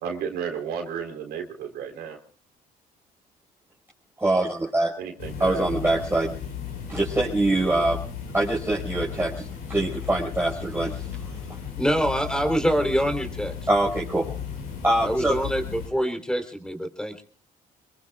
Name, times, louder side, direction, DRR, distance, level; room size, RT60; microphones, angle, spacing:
voice 1, 0.0-2.2 5.0-5.6, right 7 dB, 75° right, 3 dB, 3.8 m, -33 dB
voice 2, 4.2-4.9 5.4-6.4 6.9-8.0 8.3-11.2 13.7-14.3 14.8-15.4, right 2 dB, 15° right, -4 dB, 5.2 m, -24 dB
sound 1, 5.2-15.9, left 7 dB, 80° left, 6.0 m, -35 dB
voice 3, 11.8-13.5 15.0-17.2, equal, 5° left, 6 dB, 3.7 m, -25 dB
27.0 x 22.0 x 2.5 m, 0.42 s
supercardioid pair, 75°, 17 cm